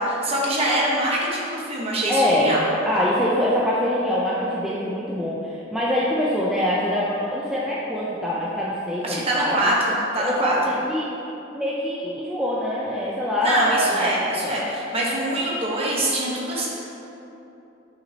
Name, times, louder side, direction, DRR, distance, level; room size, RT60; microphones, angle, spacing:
voice 1, 0.0-2.6 9.0-10.6 13.4-16.7, right 1 dB, 30° right, -4 dB, 1.1 m, -24 dB
voice 2, 2.1-9.7 10.2-11.1 11.5-14.7, left 1 dB, 5° right, -7 dB, 0.5 m, -24 dB
8.1 x 6.0 x 2.8 m, 2.9 s
head